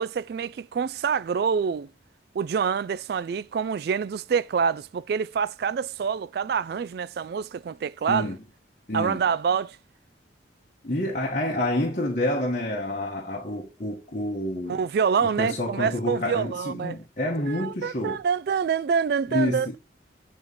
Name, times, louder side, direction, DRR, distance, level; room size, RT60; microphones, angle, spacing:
voice 1, 0.0-1.9 2.3-8.3 8.9-9.8 14.7-17.0 17.4-19.8, right 6 dB, 55° right, 0.3 m, -26 dB
voice 2, 8.1-8.4 8.9-9.2 10.8-14.8 15.4-18.2 19.3-19.8, left 1 dB, 45° left, 1.4 m, -28 dB
9.0 x 4.3 x 4.0 m
head